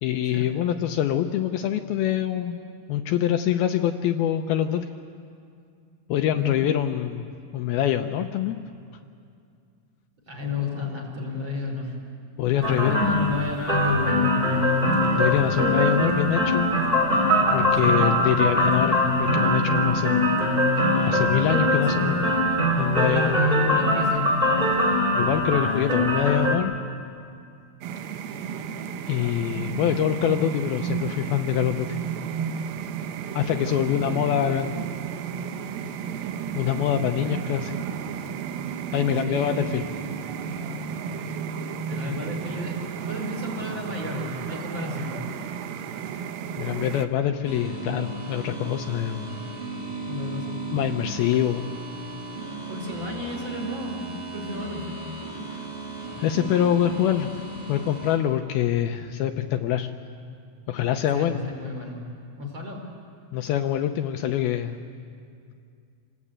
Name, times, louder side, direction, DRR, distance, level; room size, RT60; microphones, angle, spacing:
voice 1, 0.0-2.6 2.9-4.9 6.1-7.3 7.5-8.6 12.4-13.0 15.1-16.8 17.5-20.3 21.0-22.3 22.8-23.4 25.1-26.8 29.1-32.0 33.3-34.7 36.6-37.8 38.9-39.9 46.6-49.4 50.7-51.7 55.5-55.6 56.2-59.9 60.7-61.4 63.3-64.8, left 11 dB, 75° left, 6 dB, 2.5 m, -25 dB
voice 2, 10.3-11.9 12.5-14.4 17.8-18.1 21.9-22.1 22.9-24.3 33.8-34.2 39.2-39.5 41.8-42.8 43.1-45.2 50.0-51.0 52.7-55.0 61.1-62.0 62.4-62.9, left 3 dB, 30° right, 0 dB, 4.3 m, -32 dB
sound 1, 12.6-26.5, left 1 dB, 15° right, 3.4 m, -22 dB
sound 2, 27.8-47.1, right 7 dB, 70° right, 2.6 m, -33 dB
sound 3, 47.4-58.2, right 3 dB, 45° right, 4.9 m, -36 dB
27.5 x 19.5 x 8.8 m, 2.3 s
omnidirectional pair, 4.7 m